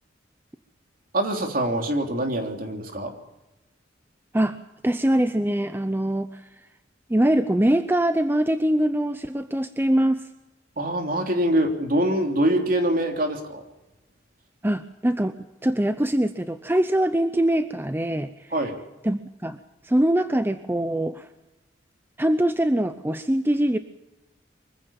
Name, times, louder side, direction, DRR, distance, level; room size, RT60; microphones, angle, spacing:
voice 1, 1.1-3.1 10.8-13.6 18.5-18.7, right 1 dB, 50° right, 4 dB, 3.2 m, -24 dB
voice 2, 4.8-6.4 7.1-10.2 14.6-15.3 15.6-18.5 19.0-19.6 19.8-21.3 22.2-23.8, right 1 dB, 10° right, 10 dB, 0.7 m, -23 dB
24.0 x 15.5 x 7.1 m, 1.0 s
head